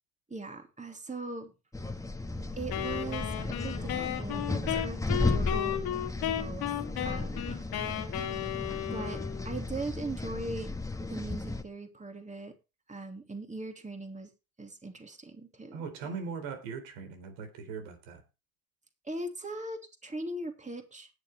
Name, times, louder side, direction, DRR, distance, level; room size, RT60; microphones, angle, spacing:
voice 1, 0.3-1.5 2.5-5.8 6.2-6.7 7.0-7.7 8.0-8.2 8.9-10.7 11.0-12.5 12.9-14.3 14.6-15.8 19.0-21.1, right 2 dB, 15° right, 5 dB, 2.8 m, -40 dB
sound 1, 1.7-11.6, left 2 dB, 10° left, 1.5 m, -34 dB
Wind instrument woodwind instrument, 2.7-9.5, left 11 dB, 65° left, 2.5 m, -34 dB
voice 2, 15.7-18.2, right 5 dB, 75° right, 6 dB, 4.1 m, -40 dB
19.5 x 7.0 x 3.3 m, 0.29 s
hypercardioid pair, 75°, 42 cm